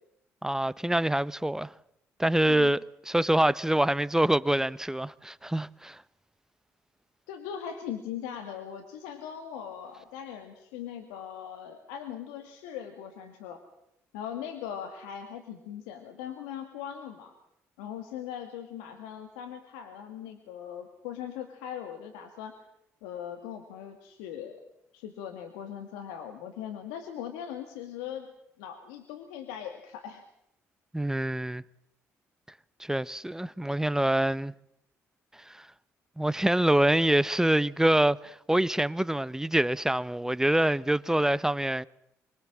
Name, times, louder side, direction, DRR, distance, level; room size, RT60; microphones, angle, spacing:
voice 1, 0.4-1.7 2.2-2.8 3.1-6.0 30.9-31.6 32.8-34.5 35.5-35.7 36.2-41.9, right 1 dB, 10° right, 0.9 m, -25 dB
voice 2, 7.3-13.6 14.1-17.3 17.8-22.5 23.0-24.6 24.9-28.3 28.6-30.2, left 9 dB, 90° left, 2.3 m, -40 dB
26.0 x 22.0 x 7.5 m
supercardioid pair, 60°, 7 cm